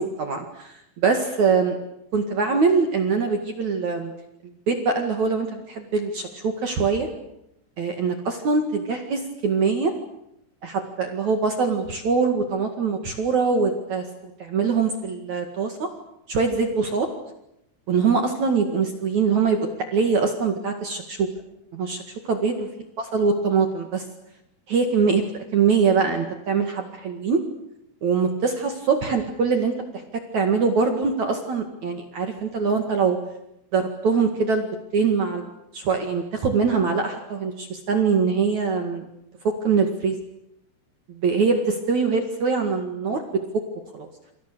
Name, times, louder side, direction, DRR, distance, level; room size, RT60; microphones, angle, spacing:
voice 1, 0.0-1.8 2.1-4.1 4.7-7.1 7.8-9.9 10.6-14.0 14.4-15.9 16.3-17.1 17.9-21.3 21.7-22.0 22.3-22.7 23.1-24.0 24.7-25.2 25.5-27.4 28.0-29.7 30.3-33.2 33.7-34.7 34.9-39.0 39.4-40.2 41.2-43.4 43.9-44.1, right 5 dB, 50° right, 5 dB, 2.5 m, -23 dB
29.0 x 25.0 x 6.8 m, 0.81 s
omnidirectional pair, 5.7 m